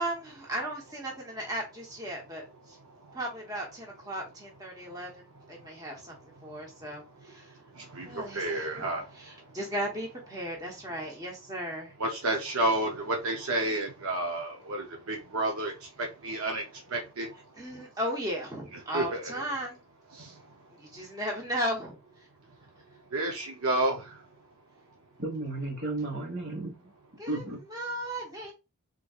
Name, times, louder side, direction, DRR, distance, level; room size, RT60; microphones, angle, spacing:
voice 1, 0.0-2.8 3.1-6.1 6.4-7.5 8.1-8.9 9.2-11.9 17.6-19.8 20.8-22.0 27.2-27.4 27.7-28.5, equal, 15° right, 0.9 m, -36 dB
voice 2, 2.7-3.2 4.7-5.0 5.4-9.6 12.0-17.9 18.7-19.4 20.1-20.6 20.9-21.0 22.5-22.6 23.1-24.3, right 1 dB, 75° right, 0.7 m, -33 dB
voice 3, 25.2-26.9 27.3-27.6, right 2 dB, 55° right, 1.4 m, -34 dB
3.7 x 3.0 x 2.3 m
head